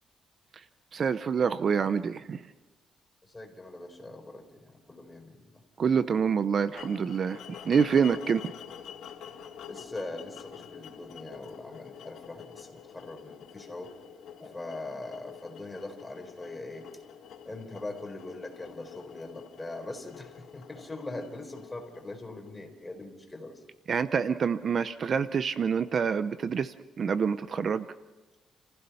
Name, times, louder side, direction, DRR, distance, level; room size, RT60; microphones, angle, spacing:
voice 1, 0.9-2.4 5.8-8.4 23.9-27.9, right 6 dB, 50° right, 13 dB, 0.7 m, -27 dB
voice 2, 3.2-5.6 9.7-13.9 14.4-17.0 17.4-23.6, left 2 dB, 15° left, 4 dB, 4.5 m, -42 dB
sound 1, 6.7-22.8, left 8 dB, 75° left, 3.3 m, -47 dB
30.0 x 15.5 x 5.7 m, 1.2 s
cardioid pair, 90°, 0 cm